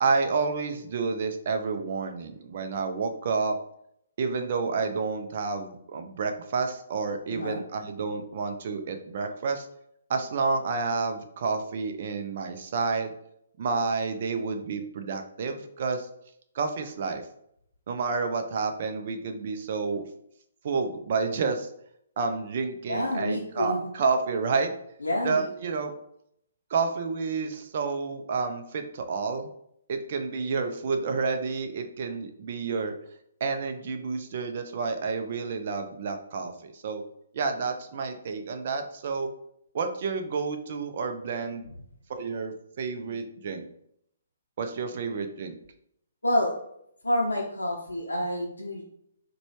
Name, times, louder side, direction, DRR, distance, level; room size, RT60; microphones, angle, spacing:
voice 1, 0.0-3.5 4.2-9.7 10.1-13.1 13.6-16.1 16.5-17.2 17.9-20.0 20.6-21.7 22.2-24.7 25.2-25.9 26.7-29.5 29.9-32.9 33.4-37.0 37.3-39.3 39.7-41.7 42.1-43.6 44.6-45.5, right 4 dB, 50° right, 6 dB, 0.5 m, -29 dB
voice 2, 7.3-7.6 22.9-23.8 25.0-25.5 46.2-46.5 47.0-48.8, left 1 dB, 80° left, -2 dB, 0.6 m, -28 dB
4.0 x 2.2 x 3.0 m, 0.73 s
figure-of-eight pair, 130°, 0 cm